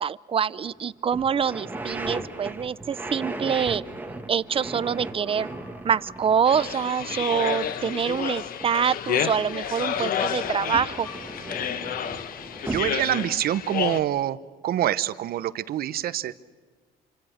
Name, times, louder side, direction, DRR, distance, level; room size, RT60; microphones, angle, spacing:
voice 1, 0.0-3.8 4.3-5.5 5.8-11.1, right 7 dB, 35° right, 18 dB, 0.7 m, -25 dB
sound 1, 0.7-0.8 1.1-9.6 9.9-13.2, right 2 dB, 10° right, 2.1 m, -37 dB
sound 2, 5.2-12.0, left 3 dB, 25° left, 4.3 m, -51 dB
sound 3, 6.5-14.0, left 8 dB, 60° left, 1.3 m, -30 dB
voice 2, 12.7-14.4 14.6-16.3, right 12 dB, 65° right, 15 dB, 1.0 m, -26 dB
28.0 x 25.5 x 6.6 m, 1.5 s
cardioid pair, 110°, 17 cm